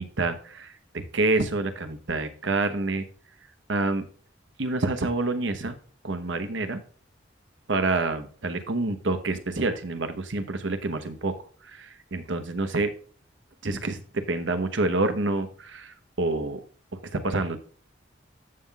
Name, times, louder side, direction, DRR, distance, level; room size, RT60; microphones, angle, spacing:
voice 1, 0.0-3.0 3.7-4.0 4.6-5.8 6.0-6.8 7.7-11.3 11.6-12.9 13.6-16.6 17.1-17.6, right 2 dB, 85° right, 9 dB, 1.0 m, -27 dB
14.0 x 5.7 x 2.3 m, 0.42 s
head